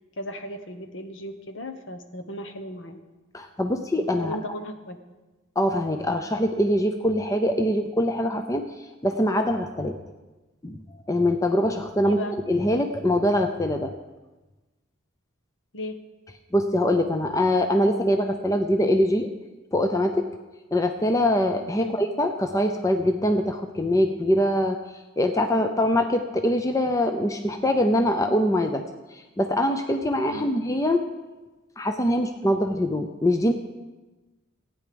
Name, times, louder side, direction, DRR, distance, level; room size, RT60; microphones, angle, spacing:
voice 1, 0.2-3.0 4.2-5.0 12.0-12.3 15.7-16.0 21.8-21.9 30.3-30.5, left 1 dB, 60° left, 7 dB, 1.1 m, -36 dB
voice 2, 3.3-4.4 5.6-8.7 9.0-10.0 10.6-12.2 12.5-13.9 16.5-19.3 19.7-20.3 20.7-24.8 25.2-28.8 29.1-31.0 31.8-33.5, left 1 dB, 15° left, 6 dB, 0.5 m, -23 dB
15.5 x 9.2 x 5.1 m, 1.2 s
head